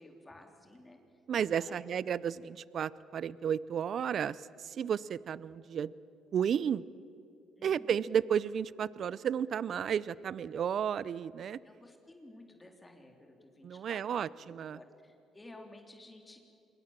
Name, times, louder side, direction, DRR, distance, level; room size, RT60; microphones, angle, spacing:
voice 1, 0.0-1.2 1.5-1.8 7.6-8.0 11.6-14.4 14.7-16.4, left 2 dB, 20° left, 3 dB, 3.8 m, -54 dB
voice 2, 1.3-5.9 6.3-6.8 7.6-11.6 13.6-14.8, right 8 dB, 60° right, 20 dB, 0.6 m, -33 dB
26.5 x 22.5 x 7.5 m, 2.7 s
supercardioid pair, 70°, 0 cm